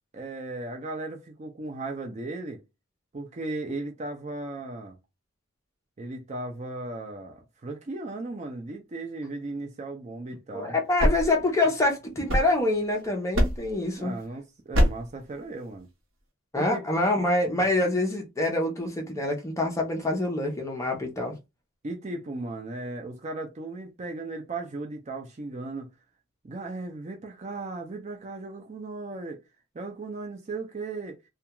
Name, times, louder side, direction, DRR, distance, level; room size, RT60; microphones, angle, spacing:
voice 1, 0.1-2.6 3.1-5.0 6.0-10.8 14.0-15.9 16.6-16.8 21.8-25.9 26.4-29.4 29.7-31.2, right 2 dB, 30° right, 0.4 m, -36 dB
voice 2, 10.5-14.1 16.5-21.3, left 2 dB, 15° left, 0.6 m, -26 dB
sound 1, 10.7-12.9 13.3-13.8 14.7-15.2, equal, 60° right, 0.9 m, -25 dB
2.3 x 2.2 x 2.9 m
head